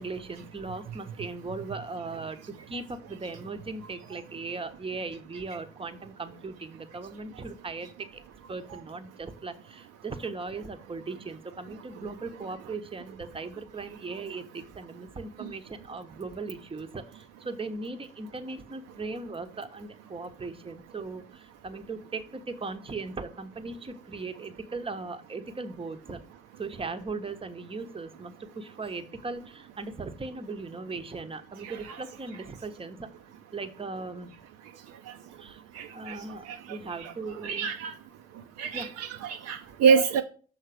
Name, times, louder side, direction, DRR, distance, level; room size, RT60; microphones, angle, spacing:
voice 1, 0.0-8.2 8.5-26.2 26.6-33.1 33.5-34.3 35.4-35.6 35.9-37.7 38.7-38.9, right 3 dB, 20° right, 0.9 m, -38 dB
voice 2, 35.8-36.2 37.0-37.1 37.4-37.9 38.6-40.2, right 6 dB, 55° right, 0.6 m, -26 dB
6.6 x 3.9 x 6.3 m
figure-of-eight pair, 40°, 30 cm